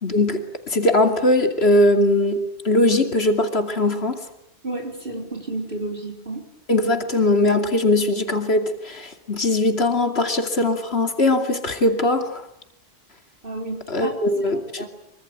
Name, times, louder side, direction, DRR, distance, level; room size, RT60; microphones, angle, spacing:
voice 1, 0.0-4.2 6.7-12.4 13.9-14.8, left 2 dB, 70° left, 6 dB, 2.9 m, -20 dB
voice 2, 4.6-6.4 13.4-14.5 14.8-14.9, right 2 dB, 55° right, 2 dB, 4.4 m, -31 dB
25.5 x 24.5 x 8.9 m, 0.77 s
omnidirectional pair, 1.1 m